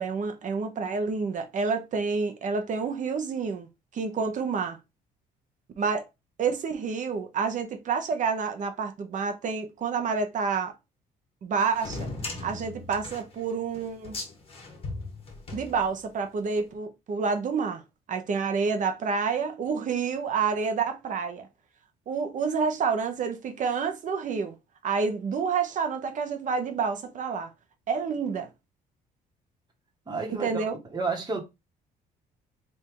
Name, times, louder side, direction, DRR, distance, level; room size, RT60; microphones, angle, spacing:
voice 1, 0.0-3.7 3.9-4.8 5.8-6.1 6.4-10.7 11.4-12.1 12.4-14.2 15.5-17.8 18.1-21.5 22.1-24.5 24.8-27.5 27.9-28.5 30.3-30.8, right 5 dB, 50° right, 0.9 m, -28 dB
sound 1, 11.7-16.3, left 2 dB, 35° left, 1.8 m, -38 dB
voice 2, 30.1-30.6 30.9-31.4, right 4 dB, 25° right, 1.4 m, -30 dB
3.5 x 2.7 x 4.6 m
cardioid pair, 110°, 17 cm